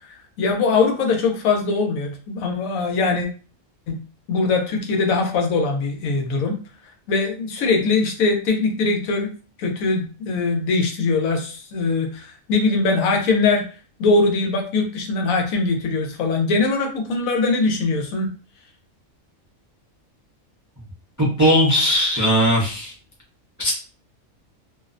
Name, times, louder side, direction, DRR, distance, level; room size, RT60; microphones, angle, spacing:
voice 1, 0.4-3.3 3.9-4.0 4.3-6.6 7.1-9.3 9.6-13.6 14.0-18.3, left 3 dB, 85° left, 3 dB, 1.0 m, -21 dB
voice 2, 21.2-22.9 23.6-23.7, equal, 30° right, -5 dB, 0.3 m, -18 dB
2.5 x 2.1 x 2.5 m, 0.38 s
omnidirectional pair, 1.4 m